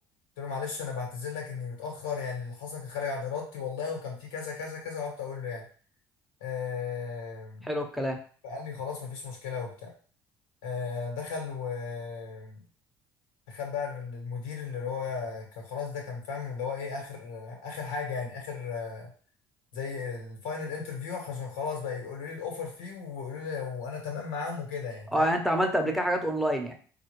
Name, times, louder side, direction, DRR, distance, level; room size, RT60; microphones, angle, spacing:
voice 1, 0.4-5.6 6.4-7.7 8.4-9.9 10.6-12.6 13.5-19.1 19.7-25.4, left 5 dB, 85° left, 0 dB, 1.2 m, -35 dB
voice 2, 7.6-8.2 25.1-26.7, equal, ahead, 3 dB, 0.8 m, -27 dB
4.2 x 2.4 x 3.1 m, 0.43 s
hypercardioid pair, 65°, 10 cm